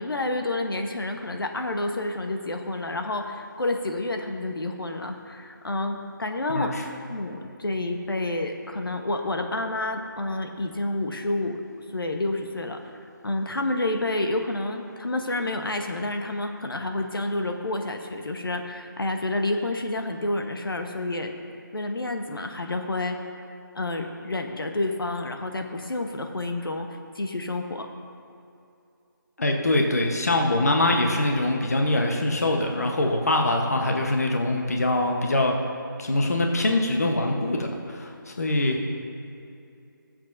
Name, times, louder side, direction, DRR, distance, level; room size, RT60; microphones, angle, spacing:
voice 1, 0.0-6.7 7.0-11.6 11.9-12.8 13.2-21.3 21.7-23.2 23.7-26.9 27.1-27.9, left 2 dB, 90° left, 4 dB, 1.0 m, -29 dB
voice 2, 29.4-35.5 36.0-38.9, left 1 dB, 45° left, 2 dB, 1.0 m, -23 dB
20.0 x 7.5 x 2.6 m, 2.6 s
figure-of-eight pair, 175°, 12 cm